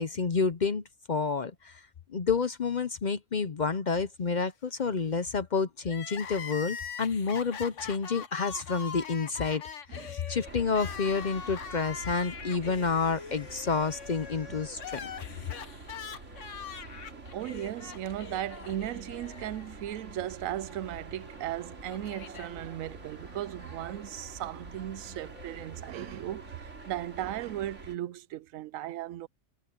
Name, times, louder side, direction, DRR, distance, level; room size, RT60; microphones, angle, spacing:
voice 1, 0.0-1.8 2.1-9.6 9.9-15.1, left 5 dB, 45° left, 0.7 m, -29 dB
Crying sobbing, 5.8-20.0 20.3-20.4 21.4-22.5, left 6 dB, 70° left, 1.6 m, -43 dB
voice 2, 9.9-10.2 14.5-14.6 17.3-29.3, right 12 dB, 85° right, 1.0 m, -37 dB
sound 1, 10.4-28.0, right 3 dB, 65° right, 3.1 m, -47 dB
omnidirectional pair, 1.3 m